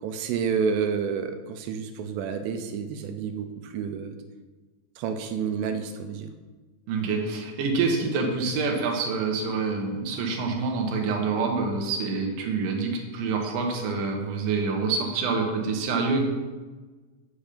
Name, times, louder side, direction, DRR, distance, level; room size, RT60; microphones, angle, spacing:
voice 1, 0.0-4.2 5.0-6.3, right 6 dB, 85° right, 7 dB, 2.9 m, -29 dB
voice 2, 6.9-16.2, right 4 dB, 65° right, 2 dB, 2.2 m, -26 dB
7.3 x 7.0 x 5.0 m, 1.3 s
omnidirectional pair, 5.0 m